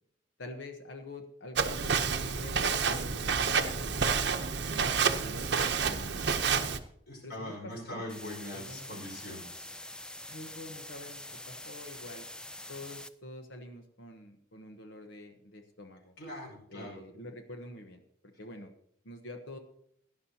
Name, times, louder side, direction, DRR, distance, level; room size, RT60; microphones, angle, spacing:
voice 1, 0.4-4.4 4.7-6.7 7.2-8.0 8.5-9.0 10.2-12.3 12.7-16.1 16.7-18.7 19.0-19.6, left 1 dB, 80° left, 5 dB, 1.1 m, -46 dB
Walk footsteps, 1.6-6.8, right 5 dB, 60° right, 0.7 m, -29 dB
voice 2, 7.1-9.7 16.2-17.0, left 1 dB, 55° left, -1 dB, 5.3 m, -42 dB
sound 1, 8.1-13.1, left 1 dB, 5° left, 0.3 m, -45 dB
17.5 x 11.0 x 2.8 m, 0.70 s
head